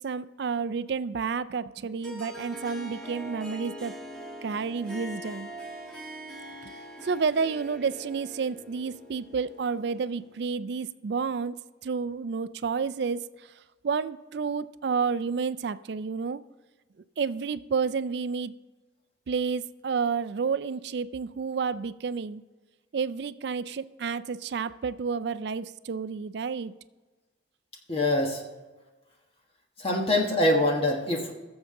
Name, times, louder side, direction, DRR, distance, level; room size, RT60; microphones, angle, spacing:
voice 1, 0.0-3.9 4.4-5.5 7.0-11.6 11.8-13.2 13.8-16.4 17.2-18.5 19.3-22.4 22.9-26.7, right 5 dB, 60° right, 14 dB, 0.4 m, -30 dB
Harp, 2.0-10.5, equal, 5° left, 1.6 m, -42 dB
voice 2, 27.9-28.4 29.8-31.3, left 1 dB, 30° left, 1 dB, 1.3 m, -24 dB
21.0 x 7.1 x 3.7 m, 1.2 s
head